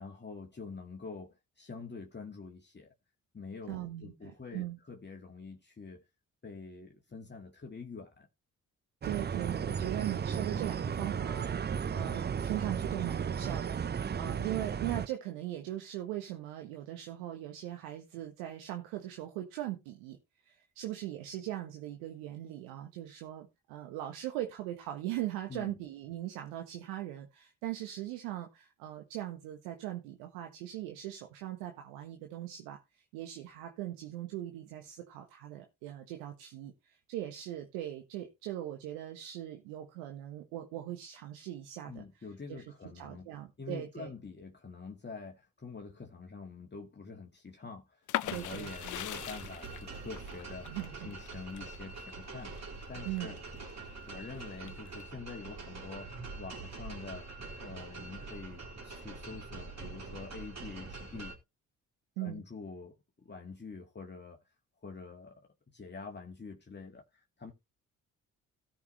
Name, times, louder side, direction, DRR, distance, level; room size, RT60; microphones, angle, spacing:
voice 1, 0.0-2.9 3.3-6.0 6.4-8.3 25.5-25.8 41.9-50.8 51.0-53.4 54.0-57.3 57.6-61.4 62.2-64.4 64.8-67.5, left 4 dB, 25° left, 1.9 m, -46 dB
voice 2, 3.7-4.8 9.0-20.2 20.4-32.8 33.1-42.0 42.5-42.6 42.9-44.1 48.3-48.7 50.7-51.1 53.0-53.3 62.2-62.4, right 13 dB, 80° right, 1.5 m, -40 dB
sound 1, 9.0-15.1, right 7 dB, 25° right, 0.6 m, -34 dB
sound 2, 48.1-53.7 54.2-55.0, left 14 dB, 50° left, 0.6 m, -40 dB
sound 3, 48.2-61.4, right 3 dB, 45° right, 4.2 m, -45 dB
17.0 x 5.7 x 3.2 m
hypercardioid pair, 40°, 39 cm